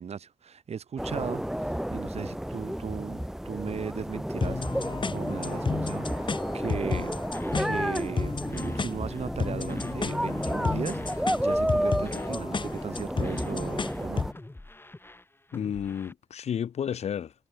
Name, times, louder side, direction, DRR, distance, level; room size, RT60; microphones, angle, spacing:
voice 1, 0.0-7.1 7.4-14.3, right 7 dB, 80° right, 2.7 m, -37 dB
sound 1, 1.0-14.3, equal, 5° right, 1.6 m, -31 dB
sound 2, 4.4-14.4, left 4 dB, 50° left, 1.2 m, -33 dB
voice 2, 6.7-7.0 15.5-17.3, left 8 dB, 85° left, 0.9 m, -32 dB
sound 3, 6.7-7.7 7.9-8.2 8.5-10.0 10.3-10.6 10.8-12.4 12.6-12.9 13.2-16.1, left 2 dB, 20° left, 3.2 m, -49 dB
cardioid pair, 60°, 11 cm